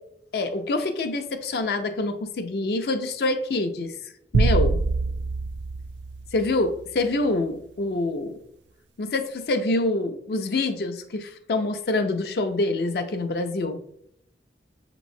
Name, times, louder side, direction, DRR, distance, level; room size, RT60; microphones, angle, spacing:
voice 1, 0.3-3.9 4.3-4.8 6.3-8.4 9.0-13.8, left 2 dB, 60° left, 7 dB, 0.4 m, -26 dB
sound 1, 4.3-6.8, right 3 dB, 80° right, 0.3 m, -24 dB
6.8 x 3.0 x 2.6 m, 0.74 s
head